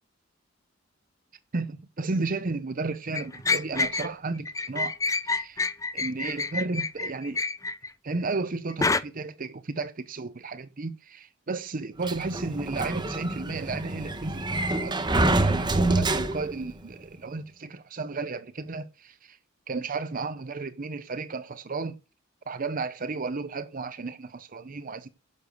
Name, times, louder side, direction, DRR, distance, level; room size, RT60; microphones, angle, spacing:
voice 1, 1.5-5.0 5.2-5.6 5.9-7.4 8.0-19.4 19.7-22.0 22.5-25.1, right 3 dB, 45° right, 0.7 m, -33 dB
sound 1, 3.1-4.1 4.4-7.9 8.8-9.0, left 4 dB, 15° left, 0.6 m, -27 dB
Sliding door, 12.0-16.7, right 2 dB, 25° right, 1.1 m, -26 dB
10.5 x 6.7 x 6.4 m
head